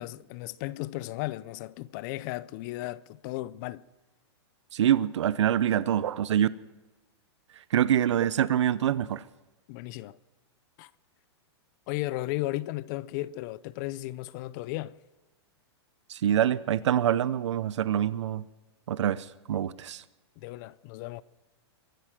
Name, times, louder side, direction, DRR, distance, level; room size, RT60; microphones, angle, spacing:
voice 1, 0.0-3.8 9.7-10.2 10.8-10.9 11.9-15.0 20.4-21.2, left 17 dB, 40° left, 0.5 m, -35 dB
voice 2, 4.7-6.5 7.7-9.2 16.1-18.4 18.9-20.0, right 10 dB, 85° right, 0.6 m, -25 dB
23.0 x 9.1 x 6.0 m
hypercardioid pair, 140°, 15 cm